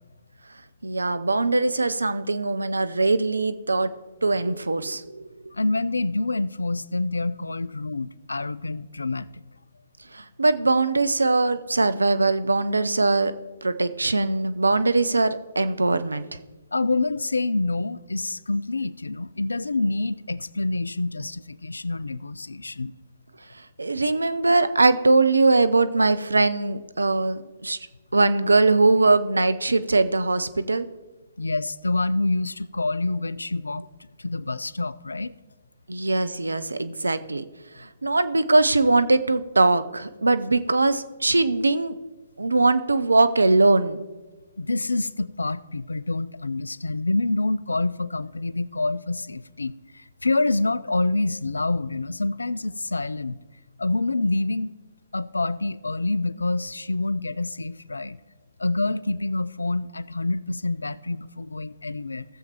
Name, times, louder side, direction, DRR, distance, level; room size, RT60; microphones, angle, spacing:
voice 1, 0.8-3.9 4.2-5.3 10.1-13.3 13.6-16.3 23.8-27.8 28.1-30.9 35.9-37.4 37.8-42.0 42.4-44.0, right 3 dB, 80° right, 12 dB, 0.5 m, -21 dB
voice 2, 5.5-9.4 16.7-22.9 31.4-33.8 34.2-35.3 44.6-53.4 53.8-54.7 55.1-58.2 58.6-62.3, left 2 dB, 75° left, 20 dB, 0.3 m, -27 dB
16.0 x 7.2 x 2.9 m, 1.2 s
figure-of-eight pair, 125°, 0 cm